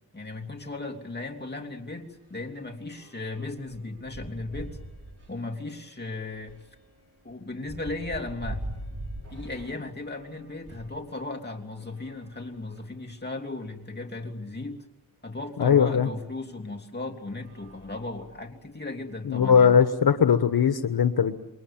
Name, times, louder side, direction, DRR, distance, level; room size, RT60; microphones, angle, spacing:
voice 1, 0.1-4.8 5.3-6.6 7.2-8.7 9.3-14.9 15.2-19.8, left 2 dB, 25° left, 3 dB, 3.1 m, -36 dB
sound 1, 1.1-1.3 1.5-11.0 11.7-13.1 13.8-13.9 14.1-14.2 15.9-16.0 16.7-16.9 17.3-18.6, right 1 dB, 40° right, 4.6 m, -43 dB
voice 2, 15.6-16.1 19.2-21.4, left 7 dB, 80° left, 9 dB, 1.3 m, -20 dB
28.0 x 23.0 x 7.3 m, 0.94 s
wide cardioid pair, 100°, 37 cm